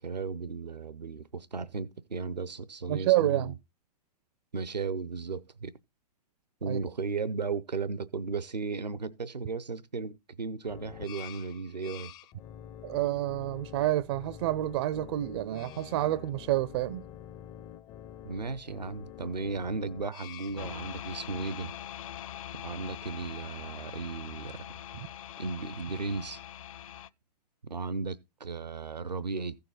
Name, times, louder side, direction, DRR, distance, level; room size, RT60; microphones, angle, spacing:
voice 1, 0.0-3.5 4.5-5.7 6.6-12.1 18.2-21.7 22.6-24.6 25.4-26.4 27.7-29.6, right 4 dB, 85° right, 0.8 m, -35 dB
voice 2, 2.9-3.5 6.7-6.8 12.8-17.0, right 15 dB, 40° right, 0.5 m, -28 dB
sound 1, 10.6-20.7, left 10 dB, 20° left, 0.5 m, -47 dB
sound 2, 20.6-27.1, left 11 dB, 55° left, 0.7 m, -43 dB
15.0 x 6.9 x 3.9 m
figure-of-eight pair, 115°, 21 cm